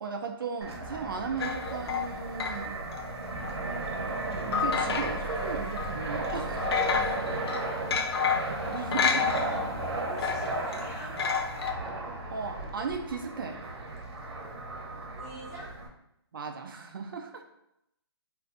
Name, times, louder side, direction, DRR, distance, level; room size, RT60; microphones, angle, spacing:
voice 1, 0.0-2.8 4.1-6.7 8.7-9.3 12.3-13.6 16.3-17.4, right 5 dB, 55° right, 5 dB, 0.4 m, -36 dB
Fixed-wing aircraft airplane, 0.6-15.9, right 2 dB, 80° right, 0.8 m, -35 dB
sound 1, 0.7-7.1, right 1 dB, 10° left, 0.4 m, -45 dB
sound 2, 1.4-3.0 3.4-3.5 4.5-5.4 5.7-5.9 6.2-9.9 10.2-11.7, left 6 dB, 70° left, 0.4 m, -30 dB
voice 2, 6.9-7.3 8.6-8.9 9.4-11.3 15.2-15.9, right 1 dB, 35° left, -7 dB, 1.2 m, -46 dB
2.5 x 2.3 x 3.8 m, 0.82 s
hypercardioid pair, 175°, 13 cm